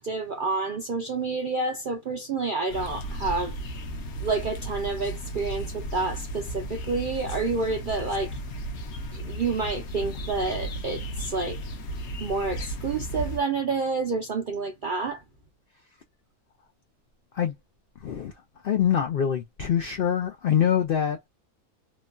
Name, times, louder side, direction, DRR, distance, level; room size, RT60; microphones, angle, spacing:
voice 1, 0.0-3.6 4.2-8.4 9.1-11.6 12.2-15.2, right 3 dB, 65° right, 0.5 m, -29 dB
sound 1, 2.7-13.4, right 1 dB, 60° left, 0.9 m, -35 dB
voice 2, 18.0-18.3 18.6-21.3, left 9 dB, 75° left, 0.5 m, -24 dB
3.1 x 2.2 x 2.4 m
omnidirectional pair, 1.5 m